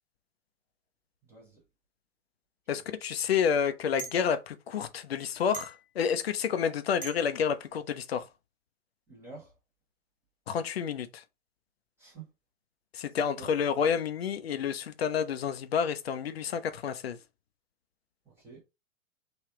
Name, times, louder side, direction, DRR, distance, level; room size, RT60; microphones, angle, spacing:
voice 1, 1.2-1.6 9.1-9.5 12.0-12.3 13.4-13.5 18.3-18.6, right 4 dB, 5° right, 0.7 m, -48 dB
voice 2, 2.7-8.3 10.5-11.2 12.9-17.2, left 7 dB, 50° left, 0.5 m, -29 dB
sound 1, 4.0-4.2 5.5-5.9 7.0-7.2, right 4 dB, 90° left, 1.0 m, -40 dB
3.4 x 2.3 x 3.5 m
figure-of-eight pair, 110°, 42 cm